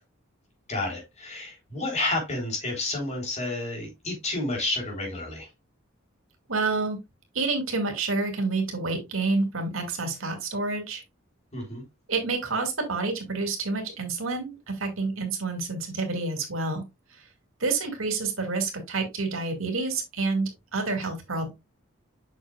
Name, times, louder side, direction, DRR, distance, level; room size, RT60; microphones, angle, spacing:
voice 1, 0.7-5.5 11.5-11.8, left 2 dB, 35° left, 3.9 m, -30 dB
voice 2, 6.5-7.0 7.3-11.0 12.1-16.8 17.6-21.5, right 3 dB, 85° right, 2.5 m, -28 dB
8.2 x 6.3 x 2.4 m
head